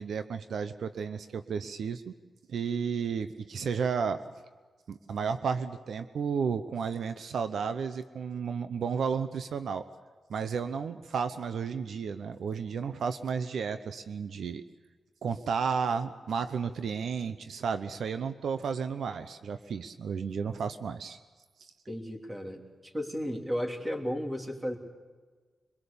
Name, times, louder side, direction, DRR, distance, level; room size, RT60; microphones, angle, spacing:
voice 1, 0.0-2.1 2.5-4.2 4.9-9.8 10.3-14.6 15.2-21.2 21.6-21.7, right 6 dB, 80° right, 10 dB, 0.8 m, -32 dB
voice 2, 21.9-24.8, equal, 20° right, 2 dB, 3.2 m, -34 dB
23.5 x 22.0 x 7.0 m, 1.4 s
wide cardioid pair, 105°, 0 cm